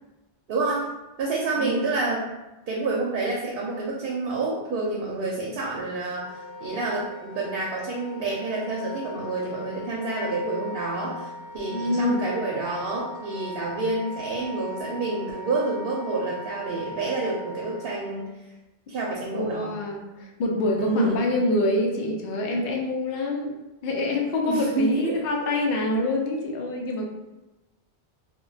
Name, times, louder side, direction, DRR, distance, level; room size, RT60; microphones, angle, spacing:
voice 1, 0.5-0.9 1.2-2.2 2.7-11.3 11.5-18.3 18.9-19.8 20.8-21.2 24.5-25.2, right 3 dB, 65° right, -3 dB, 0.7 m, -28 dB
voice 2, 1.6-1.9 11.7-12.3 19.3-27.1, left 2 dB, 65° left, 1 dB, 0.7 m, -26 dB
Wind instrument woodwind instrument, 6.1-18.1, left 1 dB, 85° left, 1.0 m, -39 dB
2.2 x 2.1 x 3.8 m, 1.0 s
omnidirectional pair, 1.1 m